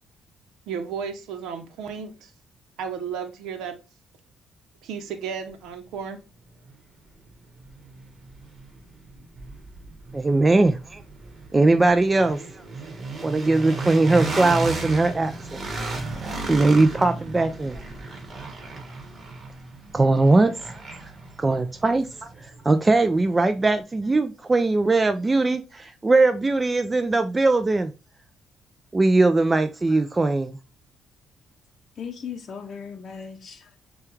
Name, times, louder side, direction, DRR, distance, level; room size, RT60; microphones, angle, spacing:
voice 1, 0.7-2.3 2.8-3.8 4.8-6.2, right 6 dB, 90° right, 0.7 m, -33 dB
sound 1, 6.7-6.8 7.3-23.2, right 3 dB, 40° right, 1.4 m, -35 dB
voice 2, 10.1-11.0 11.5-12.4 13.2-15.6 16.5-17.8 19.9-20.8 21.4-27.9 28.9-30.6, right 2 dB, 20° right, 0.3 m, -20 dB
voice 3, 32.0-33.8, left 6 dB, 50° left, 0.6 m, -37 dB
6.7 x 2.3 x 3.1 m
cardioid pair, 90°, 0 cm